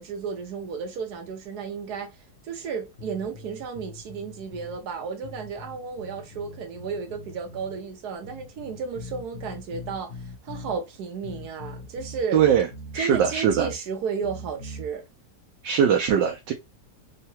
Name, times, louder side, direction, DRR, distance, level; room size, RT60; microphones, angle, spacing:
voice 1, 0.0-2.1 2.4-10.1 10.4-12.4 12.9-15.0, right 6 dB, 65° right, 1.4 m, -33 dB
sound 1, 3.0-4.8 5.2-7.8 8.2-10.8 11.2-13.8 14.2-14.9, left 1 dB, 50° left, 1.1 m, -41 dB
voice 2, 12.3-12.7 12.9-13.7 15.6-16.5, right 8 dB, 85° right, 1.3 m, -21 dB
3.7 x 2.2 x 2.7 m
omnidirectional pair, 1.9 m